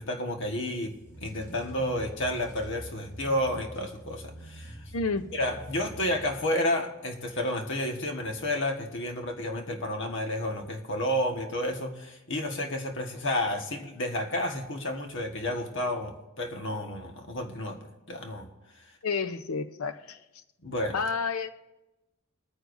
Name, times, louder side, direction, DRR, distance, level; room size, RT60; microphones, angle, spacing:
voice 1, 0.0-4.8 5.3-17.8 18.1-18.5 20.6-21.0, left 1 dB, 60° left, 3 dB, 1.5 m, -31 dB
sound 1, 0.8-6.7, right 1 dB, 15° left, 3.2 m, -45 dB
voice 2, 4.9-5.3 19.0-20.2 20.9-21.5, left 4 dB, 90° left, 11 dB, 0.7 m, -30 dB
22.0 x 9.7 x 2.6 m, 0.99 s
head